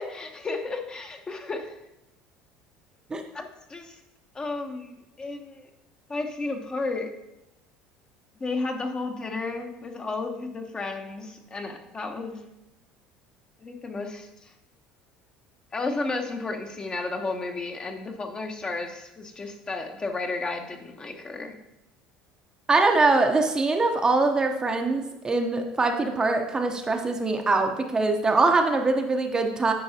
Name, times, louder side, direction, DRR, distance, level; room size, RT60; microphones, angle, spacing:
voice 1, 0.0-1.8 3.3-3.9 4.3-5.7 6.1-7.1 8.4-12.4 13.6-14.5 15.7-21.6, left 3 dB, 25° left, 4 dB, 0.9 m, -33 dB
voice 2, 22.7-29.7, right 3 dB, 20° right, 4 dB, 0.7 m, -23 dB
9.4 x 4.7 x 2.8 m, 0.91 s
supercardioid pair, 85°, 3 cm